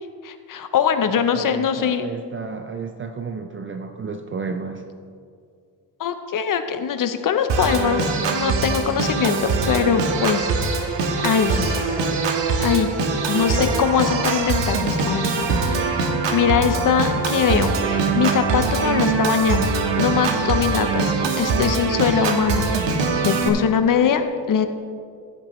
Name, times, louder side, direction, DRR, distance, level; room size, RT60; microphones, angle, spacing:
voice 1, 0.2-2.1 6.0-12.0 12.6-12.9 13.3-15.5 15.8-19.7 20.0-24.7, left 7 dB, 45° left, 9 dB, 0.6 m, -22 dB
voice 2, 1.3-4.8, right 5 dB, 30° right, 6 dB, 0.4 m, -32 dB
Organ, 7.5-23.5, right 4 dB, 70° right, 1.2 m, -22 dB
15.0 x 8.8 x 3.0 m, 2.3 s
cardioid pair, 160°, 45 cm